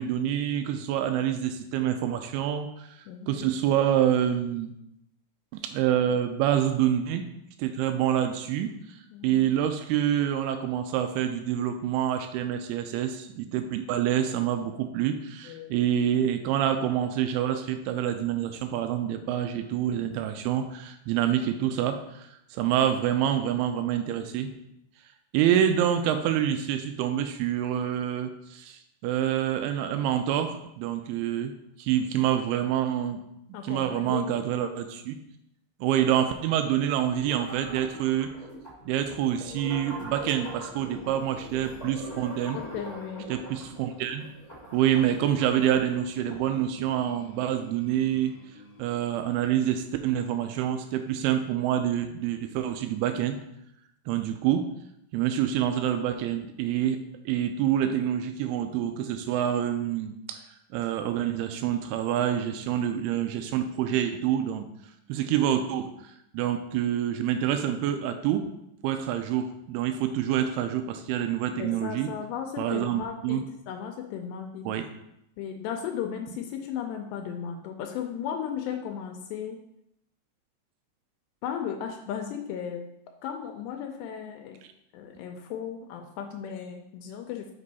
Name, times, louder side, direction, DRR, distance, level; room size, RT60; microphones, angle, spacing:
voice 1, 0.0-2.9 3.3-4.7 5.6-7.3 7.6-8.8 9.2-24.5 25.3-31.5 31.8-33.2 33.6-35.2 35.8-38.3 38.9-42.6 43.3-44.3 44.7-48.3 48.8-53.4 54.1-54.7 55.1-57.0 57.3-60.4 60.7-64.7 65.1-65.9 66.3-68.5 68.8-72.1 72.6-73.4 74.7-74.9, right 10 dB, 85° right, 7 dB, 2.2 m, -27 dB
voice 2, 3.1-3.5 5.9-6.0 9.1-9.5 15.5-15.8 33.5-34.3 42.5-43.3 63.9-64.0 71.6-73.4 73.7-74.7 75.4-79.6 81.4-82.8 83.2-84.6 84.9-87.5, left 8 dB, 80° left, 3 dB, 2.6 m, -35 dB
sound 1, 37.0-46.6, equal, 10° left, 0.9 m, -43 dB
sound 2, 39.9-51.1, left 1 dB, 55° left, 1.9 m, -52 dB
6.1 x 5.4 x 4.0 m, 0.81 s
omnidirectional pair, 5.0 m